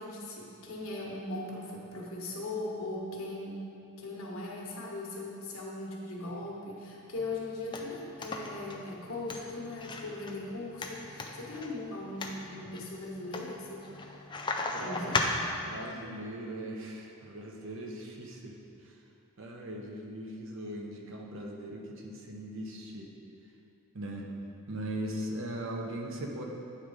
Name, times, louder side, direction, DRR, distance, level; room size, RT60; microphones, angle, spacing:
voice 1, 0.0-3.7 4.0-13.9 14.8-15.3, left 2 dB, 65° left, -3 dB, 1.2 m, -39 dB
sound 1, 7.2-15.8, left 3 dB, 20° left, 0.4 m, -37 dB
voice 2, 14.6-15.1 15.6-18.6 18.8-19.0 19.4-23.1 23.9-24.3 24.7-26.4, right 1 dB, 60° right, 0 dB, 0.8 m, -39 dB
8.7 x 3.7 x 4.8 m, 2.7 s
head